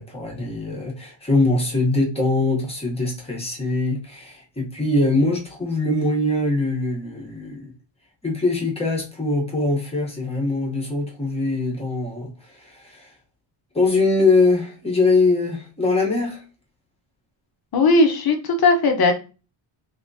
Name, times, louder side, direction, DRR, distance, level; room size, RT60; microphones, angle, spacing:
voice 1, 0.0-7.7 8.2-13.1 13.7-16.4, left 2 dB, 10° left, 1.0 m, -22 dB
voice 2, 17.7-19.1, left 3 dB, 45° left, 0.8 m, -17 dB
3.5 x 2.8 x 2.7 m
cardioid pair, 150°, 49 cm